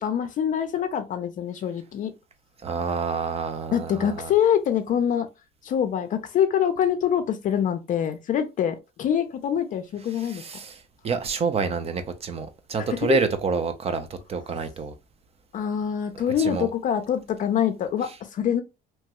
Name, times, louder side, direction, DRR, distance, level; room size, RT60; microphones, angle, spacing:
voice 1, 0.0-2.1 3.7-5.3 5.6-10.4 12.8-13.2 15.5-18.6, left 9 dB, 50° left, 0.4 m, -25 dB
voice 2, 2.6-4.3 10.2-14.9 16.4-16.7, right 5 dB, 35° right, 0.5 m, -28 dB
2.9 x 2.2 x 2.8 m
cardioid pair, 110°, 17 cm